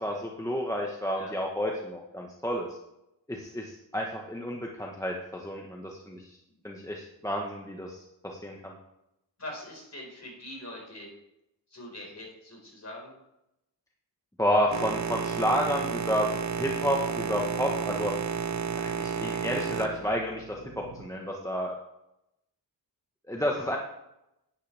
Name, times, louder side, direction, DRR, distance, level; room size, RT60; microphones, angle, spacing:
voice 1, 0.0-2.7 3.3-6.4 6.6-8.7 14.4-16.3 16.6-18.1 18.8-20.6 20.9-21.7 23.3-23.8, equal, 5° left, 0 dB, 1.2 m, -30 dB
voice 2, 9.4-11.1 11.7-13.1, left 1 dB, 35° left, -2 dB, 4.9 m, -43 dB
Boat Water vehicle, 14.7-21.1, right 6 dB, 40° right, 0.7 m, -32 dB
11.5 x 10.0 x 3.5 m, 0.86 s
wide cardioid pair, 100°, 44 cm